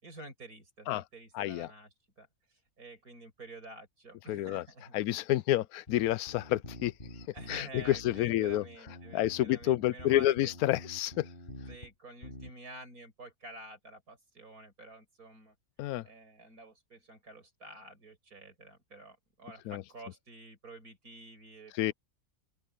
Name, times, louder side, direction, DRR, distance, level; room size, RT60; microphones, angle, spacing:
voice 1, 0.0-1.9 2.2-2.3 2.8-4.9 7.3-10.5 11.7-15.5 16.0-21.9, right 2 dB, 80° right, 6.7 m, -50 dB
voice 2, 1.3-1.7 4.3-4.6 4.9-6.9 7.5-8.6 9.1-11.3 15.8-16.0 19.7-19.8 21.7-21.9, left 14 dB, 80° left, 1.0 m, -29 dB
sound 1, 5.9-11.9 12.2-12.5, left 1 dB, 35° left, 7.2 m, -48 dB
open air
omnidirectional pair, 1.5 m